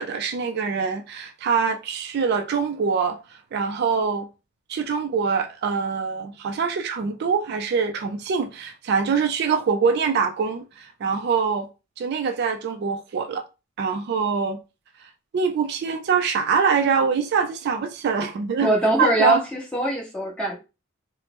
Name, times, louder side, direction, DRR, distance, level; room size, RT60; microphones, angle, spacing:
voice 1, 0.0-3.2 3.5-4.3 4.7-11.7 12.0-13.4 13.8-14.6 15.3-18.7 19.0-19.4, right 5 dB, 55° right, 0.3 m, -24 dB
voice 2, 18.6-20.5, right 1 dB, 5° left, 1.1 m, -22 dB
3.2 x 2.0 x 3.0 m
head